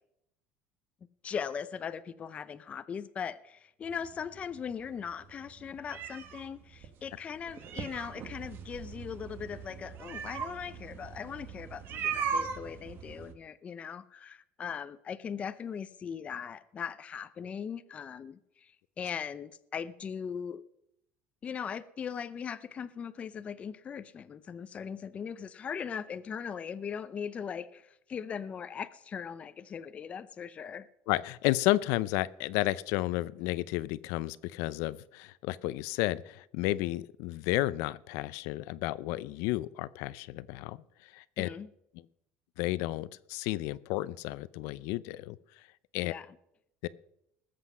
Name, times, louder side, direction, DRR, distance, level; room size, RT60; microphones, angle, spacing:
voice 1, 1.2-20.6 21.4-30.9 41.4-41.7 46.0-46.3, left 7 dB, 25° left, 13 dB, 0.6 m, -39 dB
sound 1, 3.8-13.3, right 6 dB, 45° right, 1.4 m, -39 dB
voice 2, 31.1-41.5 41.9-42.0 42.6-45.4 45.9-46.1 46.8-46.9, left 17 dB, 75° left, 18 dB, 0.6 m, -32 dB
20.0 x 7.8 x 5.6 m, 0.78 s
cardioid pair, 150°, 5 cm